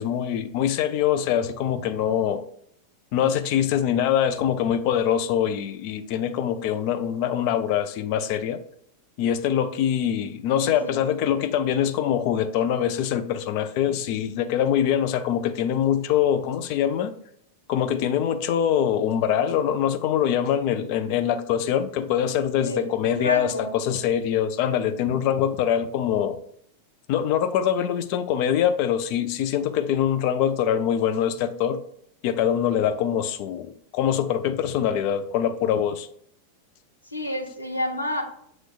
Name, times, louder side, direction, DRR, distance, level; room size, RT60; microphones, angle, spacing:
voice 1, 0.0-2.5 3.1-8.6 9.2-17.1 17.7-26.4 27.1-31.8 32.2-36.1, left 9 dB, 45° left, 0.4 m, -24 dB
voice 2, 10.6-11.0 22.6-23.7 37.0-38.2, left 1 dB, 85° left, 0.8 m, -30 dB
7.4 x 3.1 x 2.3 m
figure-of-eight pair, 90°, 0 cm